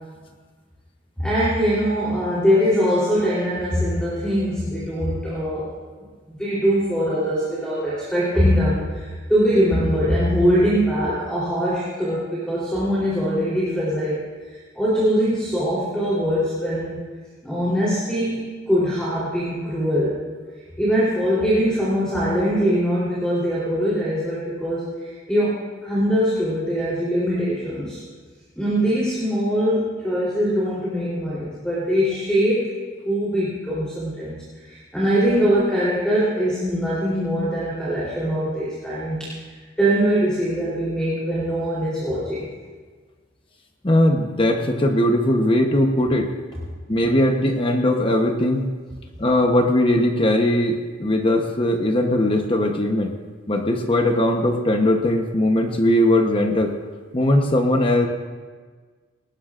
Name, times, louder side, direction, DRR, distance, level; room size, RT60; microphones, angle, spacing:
voice 1, 1.2-5.7 6.3-14.2 14.5-17.0 17.4-20.2 20.8-28.0 28.6-32.7 33.0-39.4 39.8-42.5, equal, 5° left, -9 dB, 3.5 m, -22 dB
voice 2, 43.8-46.3 46.9-48.7 49.2-53.1 53.5-56.7 57.1-58.1, left 1 dB, 25° left, 4 dB, 0.9 m, -19 dB
19.5 x 19.0 x 2.5 m, 1.5 s
head